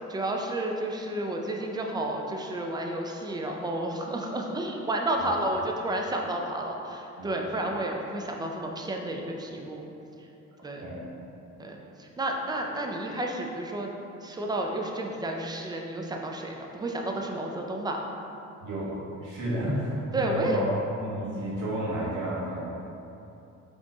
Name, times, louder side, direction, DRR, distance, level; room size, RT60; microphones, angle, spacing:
voice 1, 0.1-9.8 10.6-10.9 11.6-13.9 14.2-18.0 20.1-20.6, right 1 dB, 15° right, 1 dB, 0.4 m, -31 dB
voice 2, 7.2-7.5 10.8-11.0 18.6-20.7 21.0-22.7, right 1 dB, 85° right, -6 dB, 1.2 m, -32 dB
4.1 x 3.1 x 3.8 m, 2.9 s
cardioid pair, 90°, 30 cm